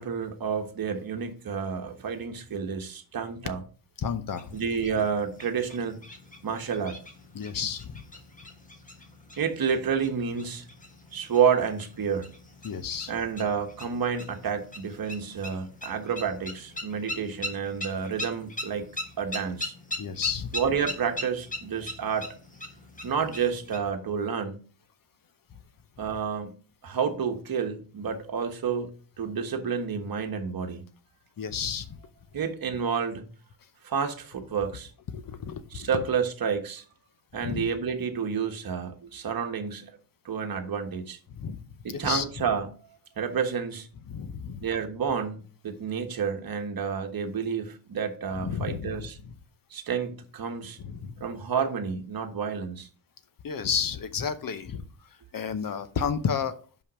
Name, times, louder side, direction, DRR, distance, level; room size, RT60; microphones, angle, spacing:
voice 1, 0.0-3.6 4.5-6.0 6.4-7.0 9.4-10.7 11.1-12.3 13.1-18.9 19.2-19.7 20.5-22.3 23.0-24.6 26.0-26.6 26.8-28.9 29.2-30.9 32.3-33.3 33.8-34.9 35.7-36.8 37.3-39.9 40.2-41.2 41.8-42.7 43.2-43.9 44.6-49.2 49.7-50.8 51.2-52.9, right 6 dB, 45° right, 1.3 m, -29 dB
voice 2, 4.0-4.6 7.3-8.0 12.6-13.1 20.0-20.5 31.4-32.0 35.1-35.9 37.4-37.7 41.4-42.2 44.1-44.7 48.3-48.9 49.2-49.3 50.8-51.1 53.4-54.8 55.3-56.6, left 7 dB, 45° left, 0.9 m, -31 dB
sound 1, 4.3-23.8, left 1 dB, 15° left, 1.3 m, -41 dB
5.5 x 5.3 x 6.2 m
cardioid pair, 125°, 49 cm